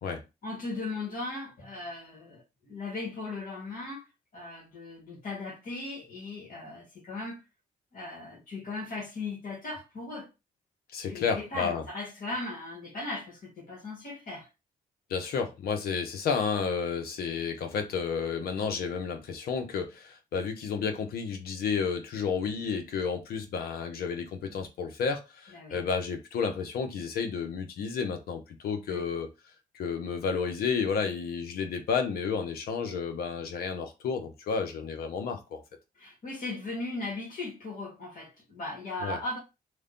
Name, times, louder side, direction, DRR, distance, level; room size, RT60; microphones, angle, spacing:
voice 1, 0.4-4.1 4.3-7.4 7.9-10.3 11.1-14.5 25.5-25.8 28.9-29.0 36.0-39.4, left 2 dB, 65° left, 1.6 m, -38 dB
voice 2, 10.9-11.8 15.1-29.3 29.7-35.6 39.0-39.2, left 6 dB, 85° left, 0.8 m, -31 dB
3.3 x 2.3 x 3.7 m
cardioid pair, 60°, 15 cm